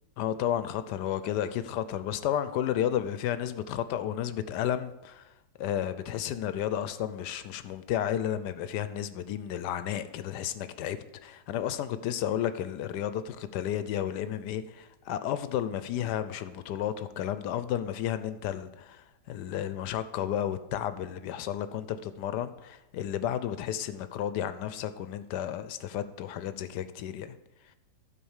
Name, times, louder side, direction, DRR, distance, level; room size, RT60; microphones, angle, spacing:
voice 1, 0.2-5.3 5.6-27.4, left 10 dB, 80° left, 13 dB, 1.2 m, -32 dB
12.0 x 4.8 x 7.2 m, 0.97 s
omnidirectional pair, 1.9 m